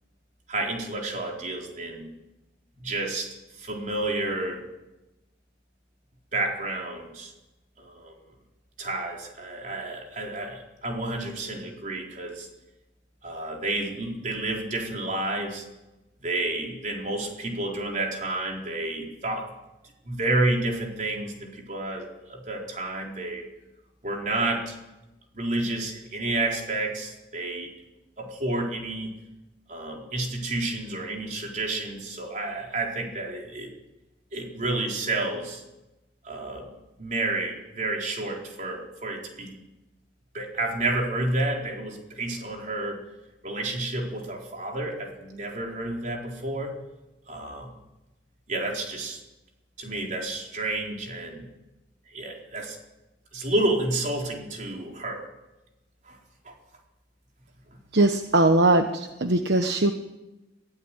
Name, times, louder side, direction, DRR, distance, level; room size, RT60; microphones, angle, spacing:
voice 1, 0.5-2.1 2.8-4.6 6.3-7.3 7.8-8.1 8.8-12.5 13.2-15.6 16.2-19.5 20.0-23.5 24.0-24.8 25.3-27.7 28.2-29.1 29.7-33.7 34.3-35.6 36.2-36.7 37.0-39.6 40.3-43.0 43.4-46.7 47.3-47.7 48.5-49.2 49.8-51.5 52.1-52.8 53.3-55.3 56.0-56.2 56.4-56.5, right 2 dB, 40° right, 0 dB, 4.4 m, -30 dB
voice 2, 57.9-59.9, right 2 dB, 65° right, 7 dB, 1.2 m, -20 dB
22.5 x 16.0 x 9.1 m, 1.0 s
head